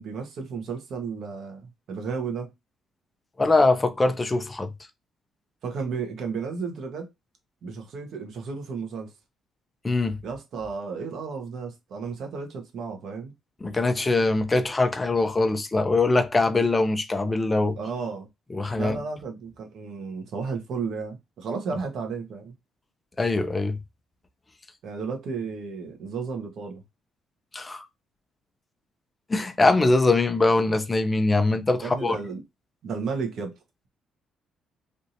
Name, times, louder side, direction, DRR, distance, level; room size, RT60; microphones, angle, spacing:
voice 1, 0.0-2.5 5.6-7.1 7.6-9.1 10.2-13.3 17.8-18.3 18.7-22.5 24.8-26.8 31.8-32.4 32.8-33.5, right 5 dB, 65° right, 1.2 m, -33 dB
voice 2, 3.4-4.7 9.8-10.2 13.6-17.8 18.5-19.0 23.2-23.8 27.5-27.9 29.3-32.2, left 2 dB, 20° left, 0.7 m, -22 dB
3.4 x 2.8 x 2.8 m
cardioid pair, 90°, 0 cm